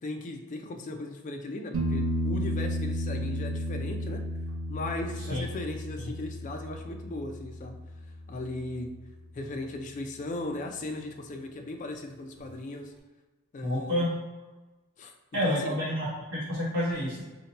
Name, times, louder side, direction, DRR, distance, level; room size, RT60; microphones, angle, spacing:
voice 1, 0.0-4.2 4.7-7.8 8.3-9.0 9.3-12.9 13.5-14.0 15.0-15.1 15.4-15.8, left 2 dB, 35° left, 4 dB, 0.3 m, -37 dB
sound 1, 1.7-9.3 12.4-12.5, equal, 85° right, 0.6 m, -33 dB
voice 2, 13.6-14.1 15.3-17.2, equal, 60° right, -9 dB, 1.0 m, -29 dB
2.8 x 2.1 x 4.0 m, 1.2 s
head